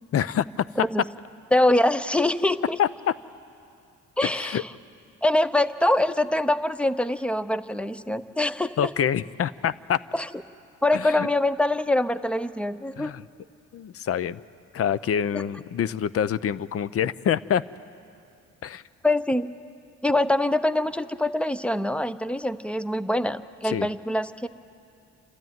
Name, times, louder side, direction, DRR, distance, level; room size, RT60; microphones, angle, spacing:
voice 1, 0.1-0.4 2.8-3.1 4.2-4.6 8.8-10.0 10.9-11.3 13.0-13.2 13.7-14.4 14.7-17.6 18.6-18.8 23.6-23.9, left 9 dB, 50° left, 17 dB, 0.6 m, -26 dB
voice 2, 1.5-2.8 4.2-4.7 5.2-8.9 10.1-10.3 10.8-13.1 15.3-15.4 19.0-19.5 20.0-24.5, left 1 dB, 5° left, 13 dB, 0.7 m, -24 dB
29.0 x 13.0 x 9.3 m, 2.5 s
cardioid pair, 90°, 30 cm